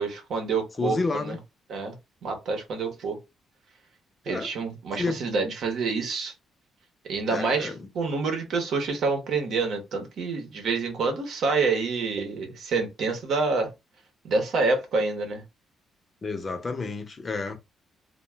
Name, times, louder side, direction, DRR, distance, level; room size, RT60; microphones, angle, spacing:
voice 1, 0.0-1.4 1.7-1.9 2.2-3.2 4.3-6.3 7.1-13.7 14.2-15.4, right 4 dB, 70° right, 0.9 m, -27 dB
voice 2, 0.8-1.4 4.3-4.5 5.0-5.2 7.3-7.9 16.2-17.6, left 3 dB, 35° left, 0.6 m, -30 dB
2.4 x 2.2 x 3.1 m
cardioid pair, 90°, 0 cm